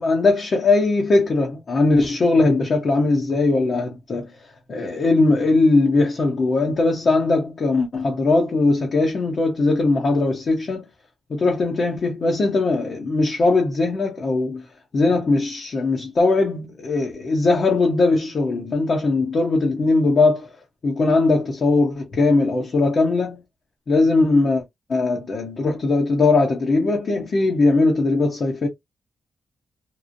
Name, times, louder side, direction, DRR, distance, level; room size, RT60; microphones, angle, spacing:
voice 1, 0.0-4.3 4.7-10.9 11.3-14.7 14.9-20.5 20.8-23.4 23.9-24.6 24.9-28.7, left 3 dB, 55° left, 0.8 m, -19 dB
2.9 x 2.0 x 2.5 m
cardioid pair, 70°, 0 cm